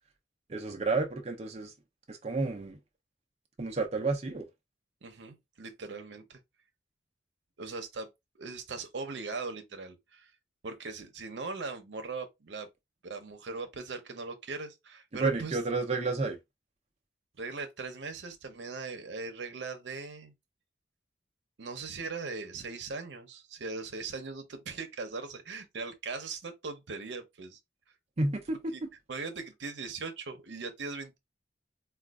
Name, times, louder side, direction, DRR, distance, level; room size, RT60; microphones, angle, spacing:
voice 1, 0.5-1.7 2.1-2.8 3.6-4.5 15.2-16.4 28.2-28.9, right 3 dB, 35° right, 0.5 m, -31 dB
voice 2, 5.0-6.4 7.6-8.1 8.4-10.3 10.6-12.7 13.0-15.6 17.4-20.3 21.6-27.6 28.7-28.8 29.1-31.2, right 4 dB, 75° right, 0.7 m, -39 dB
4.3 x 2.3 x 2.3 m
head